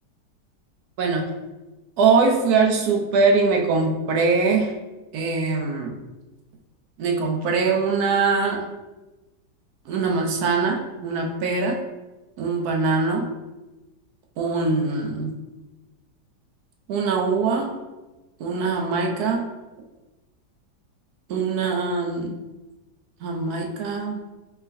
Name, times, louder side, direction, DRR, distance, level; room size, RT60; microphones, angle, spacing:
voice 1, 1.0-1.3 2.0-4.8 5.1-5.9 7.0-8.7 9.9-11.8 12.4-13.3 14.4-15.3 16.9-17.8 18.4-19.5 21.3-22.4 23.2-24.2, right 4 dB, 70° right, 1 dB, 1.0 m, -22 dB
4.6 x 3.0 x 2.5 m, 1.1 s
omnidirectional pair, 1.8 m